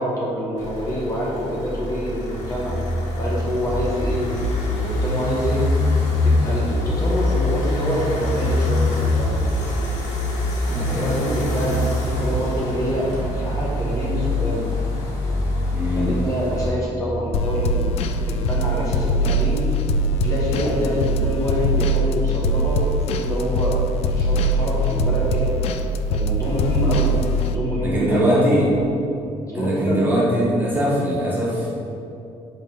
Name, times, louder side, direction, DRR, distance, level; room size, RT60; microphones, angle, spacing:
voice 1, 0.0-2.8 3.1-5.6 6.1-9.4 10.8-14.7 15.9-19.7 20.1-23.7 24.0-25.6 26.1-28.5 29.4-30.0, equal, 30° left, -5 dB, 1.4 m, -26 dB
sound 1, 0.6-16.7, left 2 dB, 80° left, 1.5 m, -24 dB
voice 2, 10.7-11.1 15.7-16.1 27.8-28.6 29.5-31.7, equal, 15° right, -6 dB, 1.3 m, -21 dB
sound 2, 17.3-27.6, equal, 55° left, 0.4 m, -22 dB
5.2 x 5.2 x 5.4 m, 2.7 s
cardioid pair, 165°, 12 cm